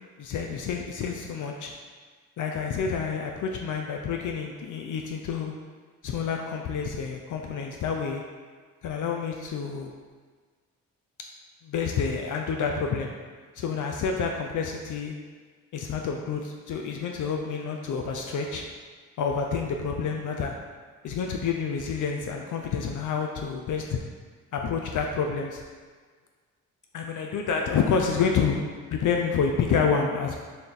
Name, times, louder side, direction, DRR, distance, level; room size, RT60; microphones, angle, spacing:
voice 1, 0.2-1.7 2.4-5.5 6.0-8.2 8.8-9.9 11.6-13.1 13.6-15.1 15.7-18.6 19.2-20.5 21.0-24.0 24.5-25.6 26.9-30.4, left 6 dB, 55° left, 2 dB, 0.5 m, -28 dB
3.4 x 2.5 x 4.0 m, 1.5 s
supercardioid pair, 65°, 37 cm